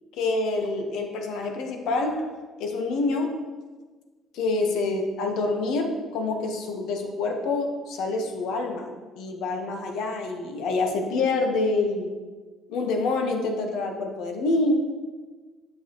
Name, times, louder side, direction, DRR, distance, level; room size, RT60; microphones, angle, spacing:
voice 1, 0.1-3.5 4.3-8.9 9.2-12.1 12.7-14.7, left 3 dB, 80° left, 3 dB, 1.2 m, -27 dB
8.7 x 6.6 x 3.1 m, 1.3 s
cardioid pair, 100°, 0 cm